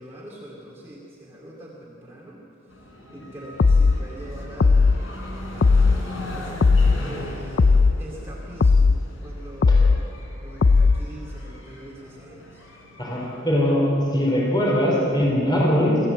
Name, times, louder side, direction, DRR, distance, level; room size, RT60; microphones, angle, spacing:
voice 1, 0.0-2.4 3.1-5.0 5.5-10.1 10.4-12.6, right 1 dB, 10° right, -5 dB, 2.5 m, -42 dB
sound 1, 2.7-13.7, left 1 dB, 90° left, 3.7 m, -40 dB
sound 2, 3.6-4.0 4.6-5.0 5.6-6.0 6.6-7.0 7.6-8.0 8.6-9.0 9.6-10.0 10.6-11.0, left 4 dB, 55° left, 0.4 m, -16 dB
voice 2, 13.0-16.0, equal, 20° left, -3 dB, 4.2 m, -21 dB
25.5 x 14.5 x 7.8 m, 2.9 s
head